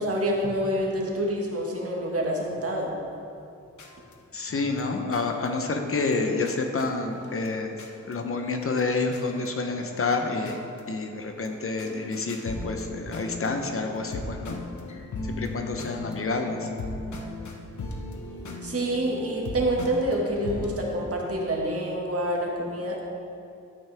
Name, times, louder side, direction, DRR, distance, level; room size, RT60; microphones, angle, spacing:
voice 1, 0.0-2.9 18.6-23.0, right 1 dB, 50° right, -2 dB, 1.8 m, -27 dB
sound 1, 3.8-8.8 9.1-9.5 9.8-20.7, left 2 dB, 70° left, 1.1 m, -39 dB
voice 2, 4.3-7.8 8.0-14.6 15.2-16.7, left 3 dB, 45° left, 4 dB, 0.8 m, -29 dB
12.5 x 8.6 x 3.5 m, 2.6 s
wide cardioid pair, 115°, 30 cm